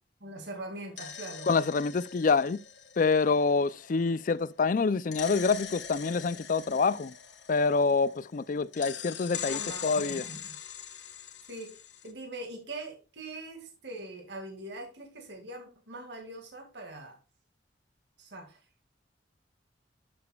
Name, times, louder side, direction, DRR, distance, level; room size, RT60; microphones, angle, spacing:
voice 1, 0.2-1.5 9.3-10.5 11.5-17.2 18.2-18.6, right 2 dB, 70° right, 2.0 m, -42 dB
sound 1, 0.7-4.4 5.1-8.3 8.7-12.1, left 9 dB, 75° left, 1.6 m, -42 dB
voice 2, 1.5-2.6 3.0-7.1 7.5-10.2, left 4 dB, 45° left, 0.4 m, -26 dB
11.5 x 7.0 x 2.3 m
head